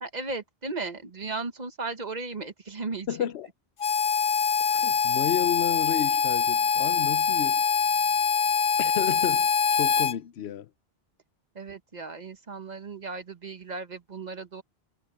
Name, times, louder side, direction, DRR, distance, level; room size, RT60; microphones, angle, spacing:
voice 1, 0.0-3.1 11.5-14.6, right 3 dB, 45° right, 1.3 m, -36 dB
voice 2, 3.1-3.5 4.6-7.6 8.8-10.7, left 11 dB, 85° left, 0.9 m, -32 dB
Harmonica, 3.8-10.1, left 6 dB, 40° left, 0.5 m, -24 dB
omnidirectional pair, 1.1 m